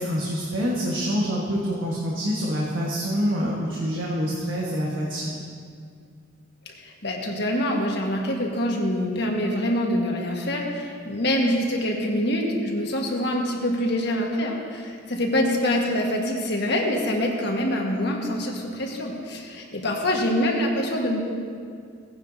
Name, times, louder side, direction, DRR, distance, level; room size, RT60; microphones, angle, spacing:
voice 1, 0.0-5.4, equal, 75° right, -4 dB, 1.5 m, -26 dB
voice 2, 6.7-21.2, left 1 dB, 60° left, 0 dB, 1.5 m, -25 dB
17.5 x 9.9 x 2.7 m, 2.2 s
head